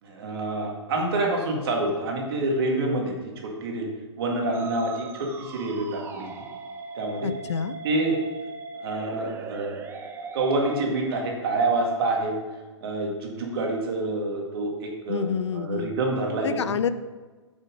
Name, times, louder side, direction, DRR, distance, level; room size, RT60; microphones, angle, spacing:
voice 1, 0.0-3.1 3.4-3.9 4.2-6.3 7.0-7.3 7.8-8.2 8.8-9.8 10.3-12.3 12.8-16.7, right 2 dB, 55° right, 1 dB, 2.0 m, -27 dB
Musical instrument, 4.5-10.9, right 4 dB, 15° right, 0.6 m, -39 dB
voice 2, 7.2-7.8 15.1-15.9 16.4-16.9, left 7 dB, 65° left, 13 dB, 0.5 m, -28 dB
7.5 x 6.2 x 5.0 m, 1.3 s
figure-of-eight pair, 115°, 16 cm